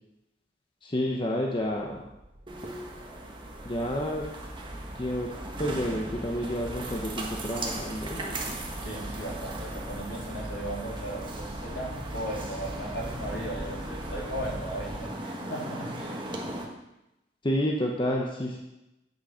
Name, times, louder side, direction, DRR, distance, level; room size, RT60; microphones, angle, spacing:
voice 1, 0.8-2.0 3.6-4.3 5.0-5.3 5.6-8.4 17.4-18.6, equal, 25° left, 0 dB, 0.9 m, -29 dB
sound 1, 1.7-15.0, equal, 60° right, 2.2 m, -41 dB
sound 2, 2.5-16.6, right 2 dB, 25° right, 1.2 m, -39 dB
voice 2, 8.8-16.2, right 1 dB, 70° left, -4 dB, 3.1 m, -37 dB
9.0 x 6.3 x 5.7 m, 0.93 s
head